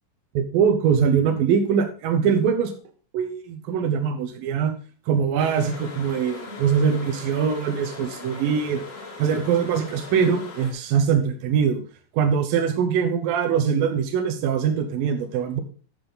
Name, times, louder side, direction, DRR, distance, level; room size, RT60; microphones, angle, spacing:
voice 1, 0.3-2.7 3.1-4.7 5.1-8.8 9.2-11.8 12.1-15.6, right 7 dB, 85° right, 5 dB, 2.0 m, -22 dB
sound 1, 5.4-10.7, left 4 dB, 40° left, 2.5 m, -39 dB
12.0 x 6.3 x 3.9 m, 0.41 s
omnidirectional pair, 5.8 m